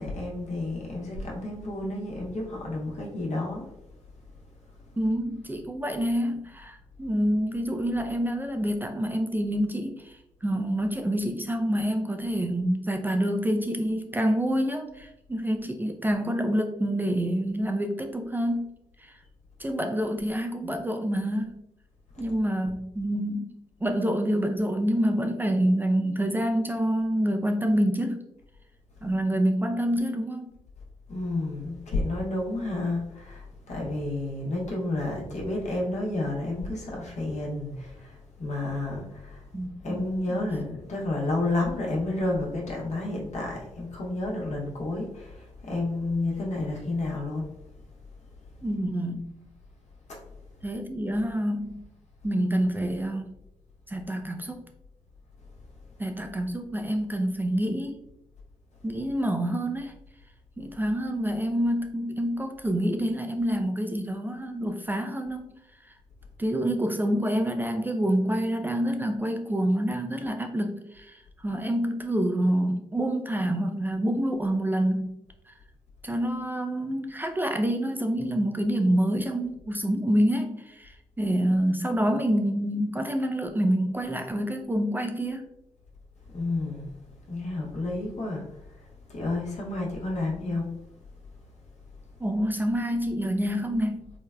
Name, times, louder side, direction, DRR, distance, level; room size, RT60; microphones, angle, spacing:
voice 1, 0.0-3.7 4.7-4.9 22.1-22.3 31.1-39.5 39.8-47.4 50.1-50.2 86.3-87.0 87.3-90.7, left 2 dB, 65° left, -2 dB, 0.9 m, -31 dB
voice 2, 5.0-18.7 19.0-19.2 19.6-21.6 22.2-23.5 23.8-28.2 29.0-30.5 39.5-40.0 40.3-40.5 48.6-49.3 50.6-51.8 52.2-53.3 53.9-54.6 56.0-58.0 58.8-59.9 60.6-65.5 66.4-75.2 75.5-75.6 76.0-85.5 92.2-94.1, equal, 15° right, 4 dB, 0.4 m, -27 dB
3.2 x 2.1 x 2.3 m, 0.84 s
supercardioid pair, 45°, 13 cm